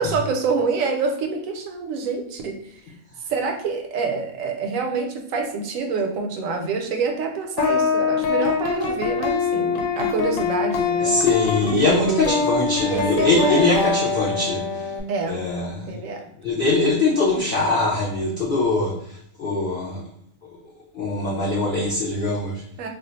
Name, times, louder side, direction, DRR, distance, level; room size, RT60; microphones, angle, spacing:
voice 1, 0.0-2.5 3.3-11.1 11.6-12.4 12.9-13.7 15.1-15.4 15.9-16.2 22.8-22.9, right 4 dB, 85° right, 4 dB, 1.0 m, -26 dB
sound 1, 7.6-15.0, left 5 dB, 80° left, 1.0 m, -23 dB
voice 2, 11.0-14.9 15.3-15.9 16.4-18.9 19.4-20.0 20.9-22.6, left 3 dB, 55° left, -5 dB, 0.6 m, -22 dB
2.4 x 2.3 x 3.9 m, 0.70 s
omnidirectional pair, 1.4 m